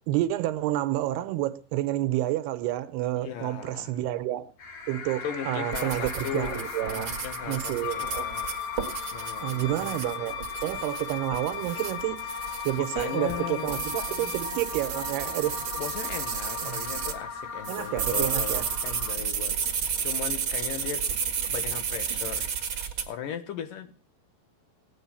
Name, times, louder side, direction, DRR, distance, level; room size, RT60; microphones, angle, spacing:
voice 1, 0.1-4.5 4.9-7.2 7.5-8.3 9.4-12.2 12.6-15.6 16.6-16.8 17.7-18.6, right 15 dB, 80° right, 2.9 m, -29 dB
voice 2, 3.2-4.0 5.2-8.5 9.1-10.2 12.8-14.4 15.8-19.8 20.0-21.1 21.4-22.5 23.1-23.9, left 8 dB, 65° left, 2.6 m, -37 dB
sound 1, 4.6-19.1, left 4 dB, 50° left, 4.1 m, -38 dB
sound 2, 5.7-17.2 17.6-23.1, right 7 dB, 45° right, 1.8 m, -32 dB
Wind instrument woodwind instrument, 7.8-14.6, left 12 dB, 80° left, 3.2 m, -38 dB
17.5 x 10.5 x 7.0 m
omnidirectional pair, 4.7 m